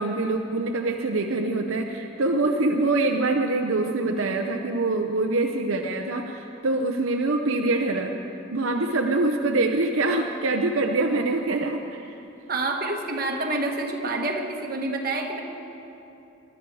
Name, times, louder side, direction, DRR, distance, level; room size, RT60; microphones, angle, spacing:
voice 1, 0.0-8.2 8.5-12.2, right 2 dB, 75° right, 3 dB, 0.7 m, -24 dB
voice 2, 12.5-15.4, right 2 dB, 45° right, 2 dB, 1.4 m, -28 dB
20.5 x 12.0 x 4.7 m, 2.8 s
head